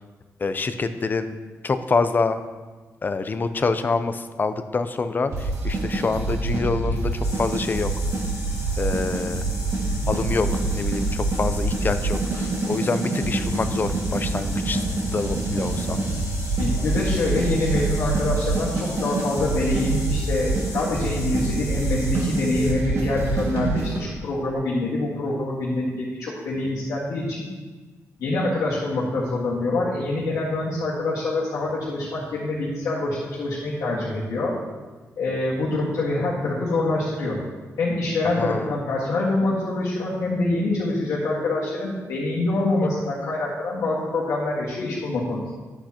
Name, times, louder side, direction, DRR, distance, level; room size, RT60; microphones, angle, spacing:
voice 1, 0.4-1.3 1.6-2.4 3.0-7.1 7.4-7.9 8.8-9.4 10.1-14.9 15.1-16.0 38.4-38.7, left 4 dB, 35° left, 10 dB, 0.5 m, -26 dB
sound 1, 5.3-24.0, right 2 dB, 55° right, 2.0 m, -26 dB
sound 2, 7.2-22.7, left 3 dB, 70° left, 1.8 m, -39 dB
voice 2, 16.6-27.5 28.2-34.6 35.2-37.4 37.8-45.5, left 2 dB, 90° left, -7 dB, 1.7 m, -25 dB
10.5 x 7.8 x 2.9 m, 1.3 s
wide cardioid pair, 120°, 6 cm